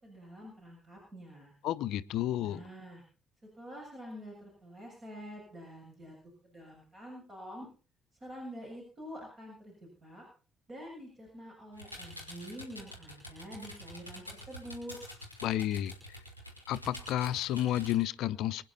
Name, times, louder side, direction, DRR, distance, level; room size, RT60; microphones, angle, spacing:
voice 1, 0.0-1.5 2.4-3.0 3.5-6.1 6.4-7.7 8.2-10.2 10.7-15.0, equal, 35° right, 7.5 m, -47 dB
voice 2, 1.6-2.6 15.4-15.9 16.7-18.6, left 12 dB, 60° left, 0.7 m, -31 dB
computer keyboard, 11.7-17.9, equal, 90° right, 3.0 m, -47 dB
25.0 x 9.7 x 4.2 m
figure-of-eight pair, 45°, 0 cm